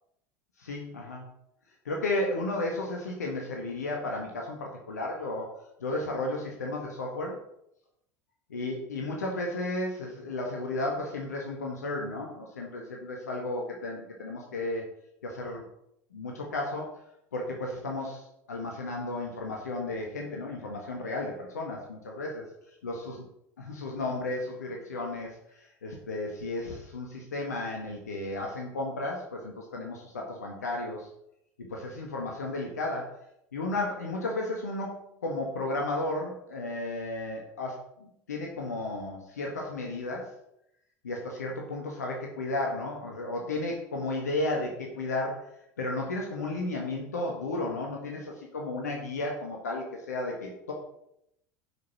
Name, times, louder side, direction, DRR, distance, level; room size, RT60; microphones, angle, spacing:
voice 1, 0.6-1.2 1.8-5.5 5.8-7.4 8.5-14.8 15.2-15.6 16.1-16.9 17.3-22.4 22.8-22.9 23.6-25.3 25.8-31.1 31.7-33.1 33.5-40.3 41.0-45.5 45.8-50.7, left 2 dB, 85° left, 0 dB, 1.7 m, -33 dB
11.0 x 5.6 x 4.3 m, 0.77 s
hypercardioid pair, 75°, 9 cm